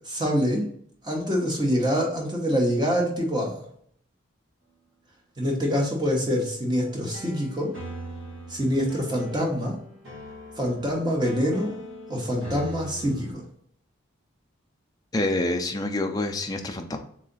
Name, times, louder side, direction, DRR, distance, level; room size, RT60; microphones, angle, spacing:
voice 1, 0.1-0.6 1.0-3.6 5.4-7.7 8.5-9.8 10.6-11.8 12.1-13.4, equal, 20° right, 0 dB, 0.9 m, -25 dB
sound 1, 6.8-13.3, right 1 dB, 65° right, 1.7 m, -41 dB
voice 2, 15.1-17.0, left 2 dB, 20° left, 4 dB, 0.4 m, -27 dB
3.8 x 3.2 x 4.0 m, 0.64 s
head